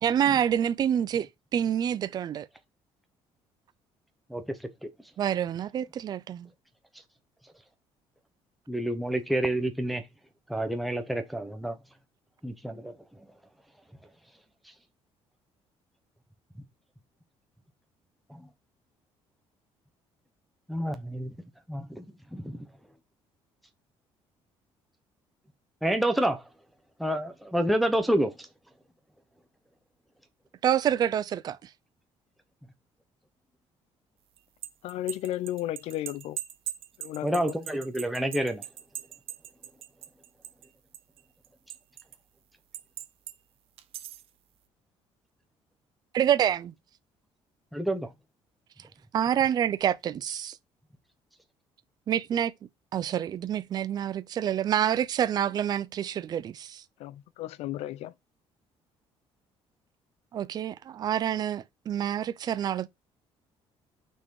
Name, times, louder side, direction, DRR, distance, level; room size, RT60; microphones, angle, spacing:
voice 1, 0.0-2.5 5.2-6.5 30.6-31.7 46.1-46.7 49.1-50.6 52.1-52.5 52.9-56.8 60.3-62.9, right 9 dB, 40° right, 0.5 m, -27 dB
voice 2, 8.7-10.0 10.5-11.8 12.4-12.9 18.3-18.4 20.7-21.3 21.7-22.0 22.3-22.6 25.8-26.4 27.0-28.3 37.2-38.6 47.7-48.1, right 1 dB, ahead, 0.8 m, -28 dB
sound 1, 34.4-40.7 40.9-42.2 42.7-43.4 43.8-44.3, right 12 dB, 60° right, 0.9 m, -40 dB
voice 3, 34.8-36.4 37.0-37.6 57.0-58.1, left 13 dB, 75° left, 0.5 m, -34 dB
5.9 x 4.5 x 4.7 m
cardioid pair, 160°, 11 cm